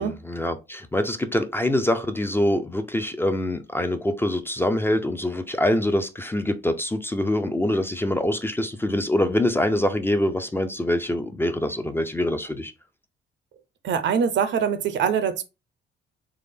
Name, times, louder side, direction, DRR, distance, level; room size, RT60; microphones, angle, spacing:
voice 1, 0.0-12.7, left 1 dB, 10° left, 0.3 m, -24 dB
voice 2, 13.8-15.4, right 7 dB, 65° right, 0.6 m, -23 dB
3.4 x 2.0 x 3.4 m
cardioid pair, 90°, 20 cm